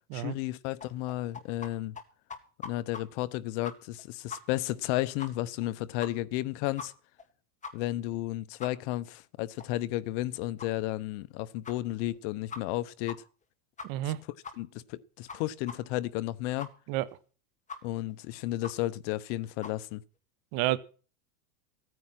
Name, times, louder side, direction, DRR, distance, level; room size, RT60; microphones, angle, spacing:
voice 1, 0.1-1.9 2.6-6.9 7.7-13.2 14.0-14.1 14.6-16.7 17.8-20.0, left 16 dB, 50° left, 0.9 m, -33 dB
sound 1, 0.8-1.7 2.0-2.1 2.3-3.0 3.3-3.4 3.6-4.0 4.3-4.4 4.7-4.8 5.2-5.3 5.6-5.7 6.0-6.4 6.8-6.9 7.2-7.3 7.6-7.7 8.1-8.2 8.6-8.7 9.1-9.2 9.6-9.7 10.1-10.2 10.6-10.7 11.1-11.2 11.6-11.8 12.1-12.2 12.5-12.8 13.1-13.2 13.4-13.5 13.8-14.1 14.4-14.6 14.9-15.0 15.3-15.4 15.7-15.8 16.1-16.2 16.6-16.7 17.1-17.2 17.7-17.8 18.1-18.2 18.6-18.7 19.1-19.2 19.6-19.7, left 5 dB, 15° left, 2.0 m, -41 dB
voice 2, 13.8-14.2 16.9-17.1 20.5-20.8, right 16 dB, 50° right, 1.4 m, -29 dB
16.5 x 9.4 x 5.9 m
supercardioid pair, 140°, 46 cm